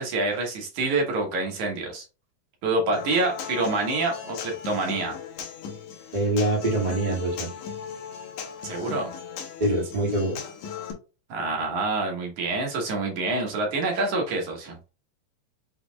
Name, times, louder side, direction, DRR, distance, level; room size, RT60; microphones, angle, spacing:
voice 1, 0.0-2.1 2.6-5.2 8.6-9.1 11.3-14.8, right 2 dB, 60° right, 1 dB, 2.4 m, -27 dB
Human voice / Acoustic guitar, 2.9-10.9, left 7 dB, 65° left, 2.1 m, -37 dB
voice 2, 6.1-7.5 9.6-10.4, right 1 dB, 35° right, -4 dB, 0.6 m, -24 dB
6.1 x 3.8 x 2.2 m, 0.31 s
omnidirectional pair, 4.4 m